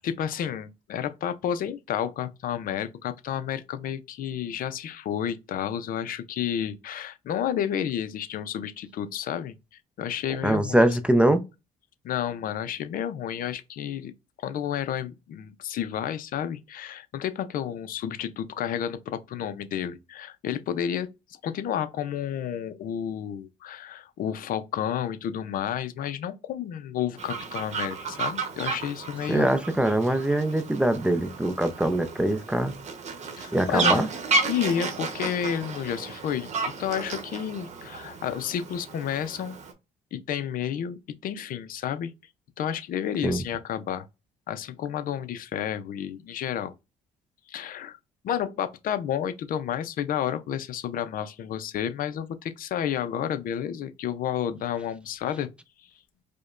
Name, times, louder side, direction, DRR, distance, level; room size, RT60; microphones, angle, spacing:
voice 1, 0.0-9.5 10.0-10.9 12.0-14.1 14.4-21.1 21.4-29.5 33.4-34.0 34.5-39.6 40.1-42.1 42.6-44.1 44.5-46.7 47.5-48.0 48.2-55.5, left 9 dB, 55° left, 0.5 m, -31 dB
voice 2, 10.4-11.4 29.3-32.7 33.5-34.1 43.2-43.4, right 1 dB, 5° right, 0.4 m, -23 dB
Fowl, 27.2-39.7, right 4 dB, 40° right, 0.9 m, -32 dB
5.0 x 2.2 x 2.4 m
cardioid pair, 110°, 17 cm